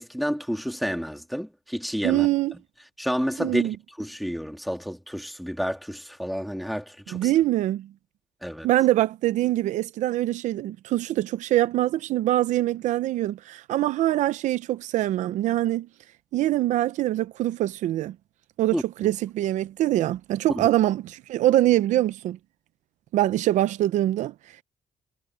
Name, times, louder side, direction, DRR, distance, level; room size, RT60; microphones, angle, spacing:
voice 1, 0.0-2.3 3.0-7.3 8.4-8.7 18.7-18.8 20.5-20.7, equal, ahead, 2.9 m, -30 dB
voice 2, 2.0-2.5 3.4-3.7 7.1-7.9 8.6-15.9 16.3-18.2 18.6-22.4 23.1-24.3, right 14 dB, 80° right, 0.6 m, -24 dB
cardioid pair, 110°, 12 cm